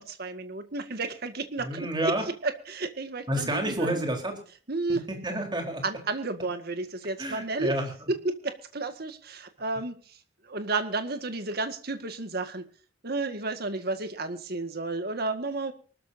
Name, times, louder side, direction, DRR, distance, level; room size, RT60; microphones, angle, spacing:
voice 1, 0.0-2.1 2.4-4.0 4.7-5.0 5.8-7.7 8.1-10.2 10.4-12.6 13.0-15.7, right 3 dB, 60° right, 8 dB, 1.9 m, -32 dB
voice 2, 1.6-2.2 3.3-4.4 4.9-5.8 7.2-8.1, right 1 dB, 25° right, 3 dB, 4.1 m, -30 dB
24.0 x 13.5 x 2.8 m, 0.41 s
head